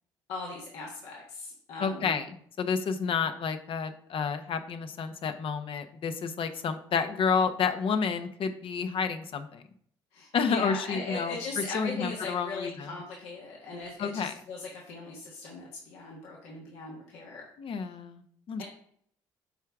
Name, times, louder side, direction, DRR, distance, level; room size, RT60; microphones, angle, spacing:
voice 1, 0.3-2.2 10.1-17.5, left 3 dB, 75° left, -3 dB, 1.5 m, -39 dB
voice 2, 1.8-9.6 10.3-12.9 14.0-14.3 17.6-18.6, left 6 dB, 55° left, 8 dB, 0.9 m, -30 dB
8.1 x 4.6 x 3.6 m, 0.63 s
hypercardioid pair, 55°, 11 cm